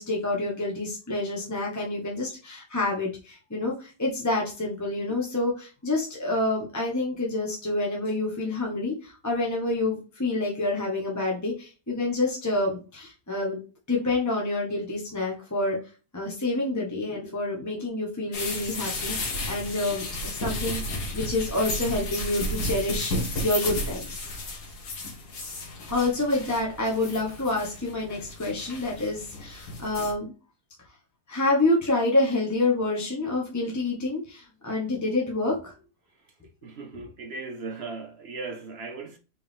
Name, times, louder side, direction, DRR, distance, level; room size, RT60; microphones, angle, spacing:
voice 1, 0.0-13.6 13.9-15.8 16.1-23.1 23.4-24.3 25.9-30.3 31.3-35.7, left 2 dB, 15° left, 0.9 m, -28 dB
sound 1, 18.3-30.1, left 1 dB, 80° left, 1.7 m, -33 dB
voice 2, 36.6-39.2, right 3 dB, 60° right, 0.7 m, -37 dB
4.4 x 3.4 x 3.5 m
omnidirectional pair, 1.7 m